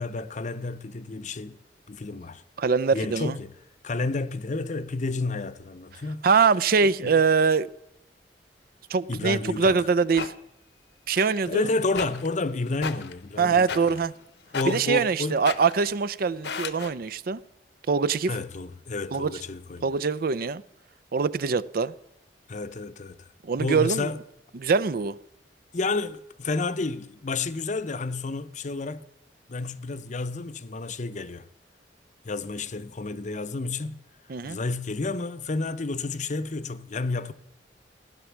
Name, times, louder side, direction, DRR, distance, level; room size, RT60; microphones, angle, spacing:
voice 1, 0.0-1.6 1.9-2.4 2.9-3.5 3.8-6.2 7.0-7.1 9.1-9.8 11.5-13.6 14.5-15.4 18.3-19.9 22.5-23.3 23.6-24.2 25.7-29.1 29.5-31.5 32.2-34.0 34.4-37.3, left 3 dB, 45° left, 0.7 m, -30 dB
voice 2, 2.6-3.4 6.2-7.7 8.9-10.3 11.1-11.7 13.4-14.1 14.7-17.4 17.9-18.3 19.1-19.3 19.8-20.6 21.1-21.9 23.4-24.1 24.5-25.2 34.3-34.6, right 5 dB, 55° right, 0.5 m, -23 dB
sound 1, 9.7-10.3 11.1-11.5 11.9-12.4 12.7-13.2 13.6-14.2 14.5-15.0 15.3-15.9 16.3-16.9, left 5 dB, 70° left, 0.9 m, -36 dB
16.0 x 10.5 x 7.2 m
head